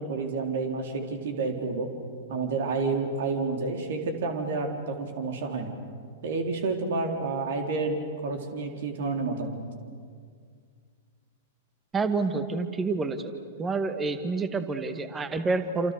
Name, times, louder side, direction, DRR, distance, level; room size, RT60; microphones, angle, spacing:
voice 1, 0.0-1.9 2.3-5.7 6.2-9.6, right 3 dB, 60° right, 4 dB, 4.0 m, -30 dB
voice 2, 11.9-13.3 13.6-15.9, right 3 dB, 15° right, 9 dB, 1.9 m, -28 dB
29.0 x 27.5 x 6.8 m, 2.1 s
figure-of-eight pair, 100°, 0 cm